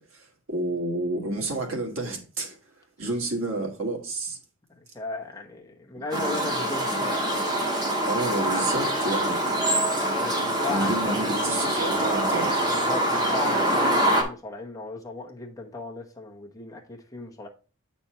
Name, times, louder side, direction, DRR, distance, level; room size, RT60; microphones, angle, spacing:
voice 1, 0.1-2.6 3.0-4.4 6.1-6.2 8.0-9.7 10.7-12.5, right 2 dB, 90° right, 1.7 m, -30 dB
voice 2, 4.7-7.4 9.9-11.4 12.7-17.5, left 3 dB, 15° left, 1.1 m, -36 dB
sound 1, 6.1-14.2, right 1 dB, 20° right, 1.5 m, -25 dB
8.0 x 4.3 x 4.3 m
head